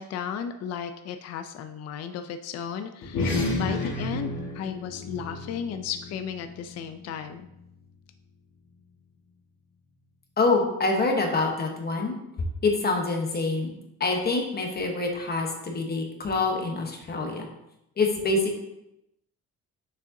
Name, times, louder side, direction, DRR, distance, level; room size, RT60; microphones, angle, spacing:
voice 1, 0.0-7.5, left 8 dB, 55° left, 8 dB, 0.4 m, -35 dB
sound 1, 3.0-7.8, left 2 dB, 85° left, 1.5 m, -32 dB
voice 2, 10.4-12.2 12.6-13.7 14.0-17.5 18.0-18.6, left 3 dB, 30° left, 2 dB, 1.0 m, -26 dB
6.5 x 6.3 x 2.6 m, 0.84 s
cardioid pair, 170°, 31 cm